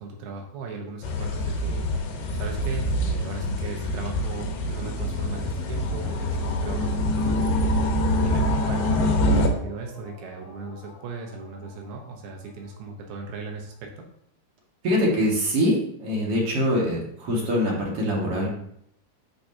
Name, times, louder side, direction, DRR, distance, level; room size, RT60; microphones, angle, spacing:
voice 1, 0.0-14.1, right 4 dB, 80° right, 2 dB, 2.9 m, -38 dB
sound 1, 1.0-9.5, left 1 dB, 70° left, 2.4 m, -25 dB
sound 2, 2.0-13.7, left 4 dB, 50° left, 1.7 m, -46 dB
voice 2, 14.8-18.5, equal, 45° right, -3 dB, 2.3 m, -24 dB
11.0 x 4.9 x 2.8 m, 0.70 s
omnidirectional pair, 4.6 m